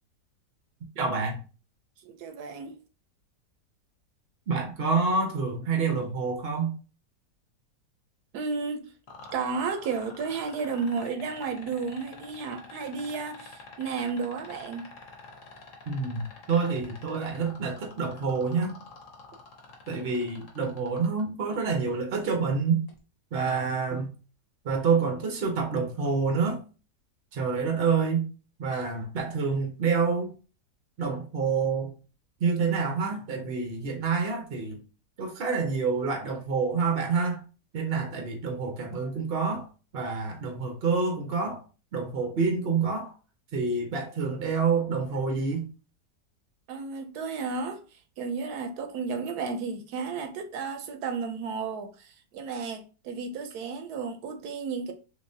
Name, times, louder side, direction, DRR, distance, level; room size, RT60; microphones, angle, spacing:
voice 1, 1.0-1.4 4.5-6.7 15.9-18.7 19.9-22.8 23.3-24.1 24.6-26.6 27.3-28.2 28.6-30.3 31.0-31.9 32.4-34.8 35.2-37.4 37.7-39.7 39.9-41.6 41.9-43.1 43.5-45.7, right 5 dB, 55° right, 0.6 m, -27 dB
voice 2, 2.0-2.8 8.3-8.9 9.3-14.9 46.7-54.9, right 5 dB, 75° right, 1.1 m, -33 dB
sound 1, 9.1-21.2 22.9-23.0, left 3 dB, 55° left, 1.1 m, -47 dB
3.7 x 2.9 x 2.6 m
omnidirectional pair, 1.8 m